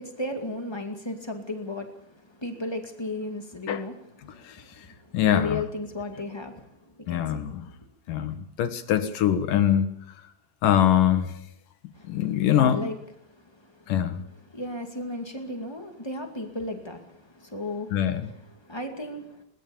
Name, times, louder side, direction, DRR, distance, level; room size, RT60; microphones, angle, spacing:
voice 1, 0.0-4.0 4.4-7.5 11.9-12.9 13.3-13.9 14.4-19.4, left 2 dB, 15° left, 3 dB, 1.0 m, -35 dB
voice 2, 4.2-4.6 5.1-5.6 7.1-7.6 8.1-9.9 10.6-11.3 12.1-12.8 13.9-14.2 17.9-18.3, left 10 dB, 65° left, 9 dB, 2.8 m, -23 dB
21.5 x 19.0 x 7.1 m, 0.72 s
omnidirectional pair, 4.5 m